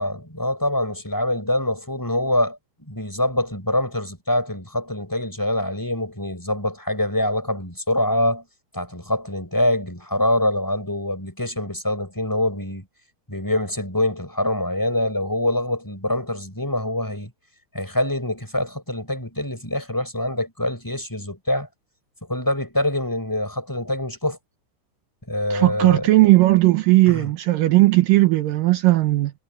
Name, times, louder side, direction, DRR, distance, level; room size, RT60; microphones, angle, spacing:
voice 1, 0.0-8.4 8.7-12.9 13.3-17.3 17.7-21.7 22.3-24.4 25.3-26.1 27.1-27.3, left 1 dB, 5° left, 5.1 m, -25 dB
voice 2, 25.5-29.3, right 18 dB, 80° right, 1.9 m, -17 dB
omnidirectional pair, 5.0 m